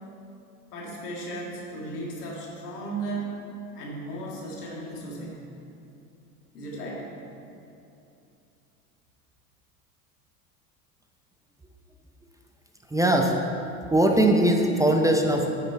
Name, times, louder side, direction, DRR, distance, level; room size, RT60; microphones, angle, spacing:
voice 1, 0.7-3.3 3.7-5.4 6.5-7.1, right 2 dB, 85° left, -3 dB, 1.9 m, -35 dB
voice 2, 12.9-13.4 13.9-15.5, right 1 dB, 10° right, 2 dB, 0.6 m, -20 dB
8.7 x 6.1 x 4.5 m, 2.7 s
hypercardioid pair, 80°, 45 cm